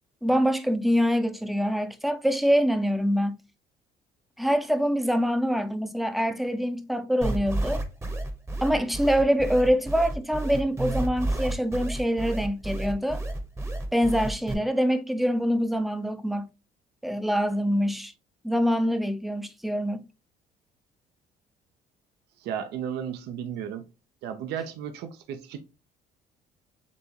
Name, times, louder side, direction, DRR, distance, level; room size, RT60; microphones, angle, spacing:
voice 1, 0.2-3.4 4.4-7.8 8.6-13.2 13.9-16.5 17.0-18.1 18.4-20.1, equal, ahead, 0.4 m, -25 dB
sound 1, 7.2-14.5, right 1 dB, 15° right, 0.8 m, -30 dB
voice 2, 22.4-23.9 24.2-25.6, right 8 dB, 80° right, 0.6 m, -34 dB
6.7 x 2.4 x 2.8 m
cardioid pair, 110°, 17 cm